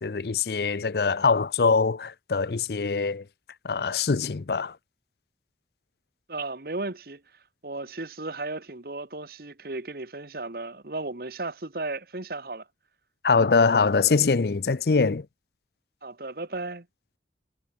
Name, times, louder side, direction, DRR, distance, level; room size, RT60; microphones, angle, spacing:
voice 1, 0.0-3.2 3.6-4.7 13.2-15.3, left 4 dB, 60° left, 0.6 m, -23 dB
voice 2, 6.3-7.2 7.6-12.7 16.0-16.9, right 2 dB, 55° right, 1.4 m, -35 dB
head